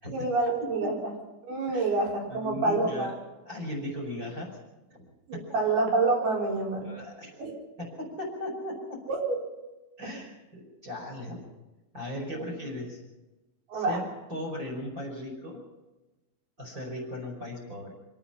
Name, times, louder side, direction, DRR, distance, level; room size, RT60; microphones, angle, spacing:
voice 1, 0.1-1.1 1.4-3.1 5.3-6.9 7.4-7.5 9.1-9.4 12.3-12.5 13.7-14.0, right 3 dB, 70° right, 0 dB, 6.5 m, -27 dB
voice 2, 2.3-3.2 3.5-4.5 5.0-5.1 5.3-5.4 6.8-7.4 7.8-9.0 10.0-11.4 11.9-13.0 13.7-15.6 16.6-17.9, left 1 dB, 20° right, 1 dB, 5.6 m, -37 dB
25.5 x 18.5 x 5.7 m, 1.1 s
omnidirectional pair, 4.7 m